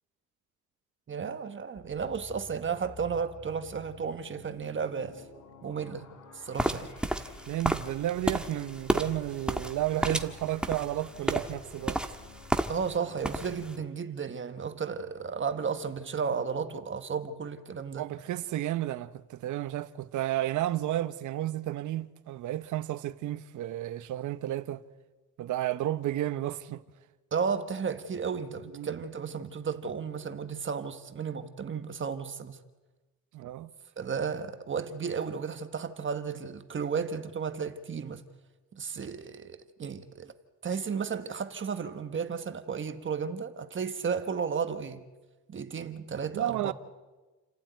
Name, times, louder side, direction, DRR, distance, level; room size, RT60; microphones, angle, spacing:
voice 1, 1.1-5.2 5.6-6.1 6.3-6.9 12.7-18.1 27.3-32.6 34.0-38.2 38.7-40.3 40.6-45.0 45.5-46.7, right 6 dB, 40° right, 1.4 m, -33 dB
sound 1, 1.7-13.9, left 4 dB, 75° left, 4.4 m, -52 dB
sound 2, 6.6-13.0 13.2-13.7, right 1 dB, 5° right, 1.5 m, -31 dB
voice 2, 7.5-12.0 18.0-24.8 25.4-26.8 28.7-28.9 33.3-33.7 46.3-46.7, right 13 dB, 80° right, 1.0 m, -32 dB
29.5 x 12.0 x 9.3 m
cardioid pair, 90°, 30 cm